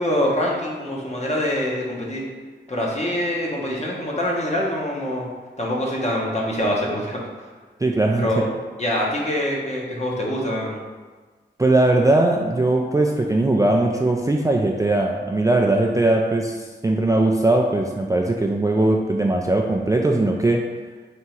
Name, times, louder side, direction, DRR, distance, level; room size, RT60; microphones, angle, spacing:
voice 1, 0.0-2.2 2.7-5.3 5.6-7.2 8.2-8.5 8.8-10.8, left 1 dB, 35° left, -3 dB, 1.0 m, -24 dB
voice 2, 7.8-8.5 11.6-20.6, right 2 dB, 15° right, 0 dB, 0.3 m, -20 dB
3.5 x 3.0 x 4.4 m, 1.4 s
wide cardioid pair, 65°, 19 cm